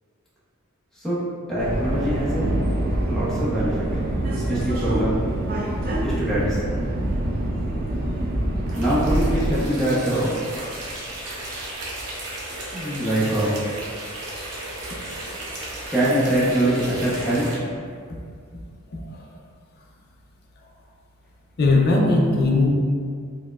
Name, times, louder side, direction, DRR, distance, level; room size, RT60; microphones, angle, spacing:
voice 1, 1.5-2.6 3.0-3.9 4.3-5.2 6.0-6.6 8.7-10.4 12.7-13.6 15.9-17.6, right 1 dB, ahead, -9 dB, 0.6 m, -23 dB
Subway metro underground, 1.6-9.6, right 1 dB, 45° right, 0.4 m, -25 dB
sound 1, 8.7-17.5, right 1 dB, 85° right, 0.7 m, -35 dB
voice 2, 18.9-19.3 21.6-22.7, left 2 dB, 45° left, -1 dB, 0.4 m, -19 dB
4.2 x 2.1 x 2.2 m, 2.2 s
head